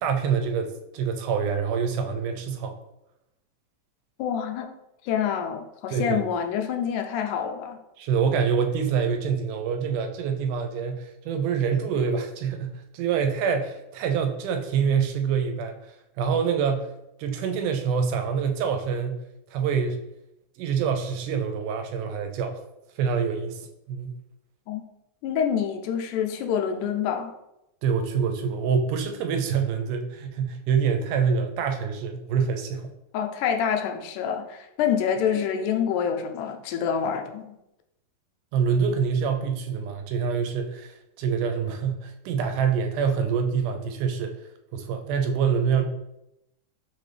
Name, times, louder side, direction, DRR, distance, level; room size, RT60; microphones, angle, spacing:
voice 1, 0.0-2.8 5.9-6.2 8.0-15.8 16.2-16.9 17.2-19.2 19.5-20.0 20.6-22.6 23.0-23.6 23.9-24.2 27.8-32.9 38.5-44.4 44.7-45.8, right 6 dB, 85° right, 5 dB, 2.1 m, -26 dB
voice 2, 4.2-4.7 5.0-7.8 24.7-24.8 25.2-27.3 33.1-37.5, left 8 dB, 80° left, 5 dB, 1.9 m, -27 dB
5.8 x 2.6 x 3.2 m, 0.87 s
omnidirectional pair, 3.7 m